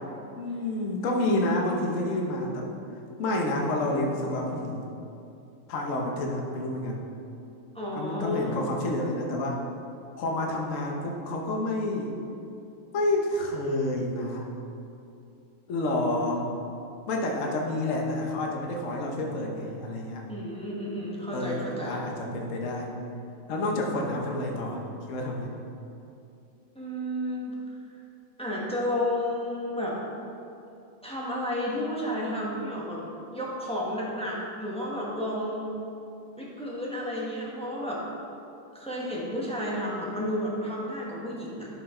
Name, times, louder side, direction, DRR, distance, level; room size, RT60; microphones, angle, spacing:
voice 1, 0.3-2.7 3.2-4.9 5.7-7.0 7.9-9.6 10.2-12.1 12.9-14.5 15.7-16.5 17.1-20.2 21.3-22.9 23.5-24.8 25.1-25.5, left 1 dB, 50° left, 0 dB, 1.1 m, -29 dB
voice 2, 7.7-8.5 20.3-22.0 26.7-27.6 28.4-30.0 31.0-33.0 33.3-35.7 36.4-38.0 38.7-41.7, left 1 dB, 5° left, -5 dB, 0.9 m, -31 dB
12.0 x 5.1 x 3.8 m, 2.7 s
omnidirectional pair, 2.3 m